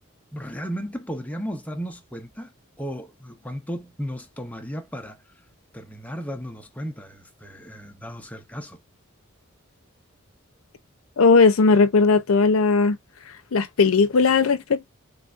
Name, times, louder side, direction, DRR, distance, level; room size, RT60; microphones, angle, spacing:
voice 1, 0.3-2.5 2.8-5.2 5.7-8.8, equal, 5° left, 0.7 m, -35 dB
voice 2, 11.2-13.0 13.5-14.9, left 4 dB, 80° left, 0.6 m, -17 dB
3.2 x 2.6 x 2.4 m
head